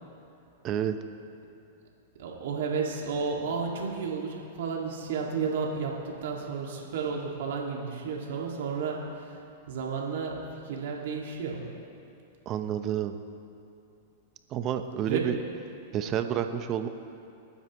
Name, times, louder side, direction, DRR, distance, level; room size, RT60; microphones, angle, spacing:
voice 1, 0.6-1.0 12.5-13.2 14.5-15.4 15.9-16.9, right 10 dB, 35° right, 8 dB, 0.8 m, -29 dB
voice 2, 2.2-11.7 15.1-15.3, right 5 dB, 70° right, -1 dB, 2.2 m, -32 dB
26.0 x 9.7 x 3.1 m, 2.7 s
hypercardioid pair, 130°, 0 cm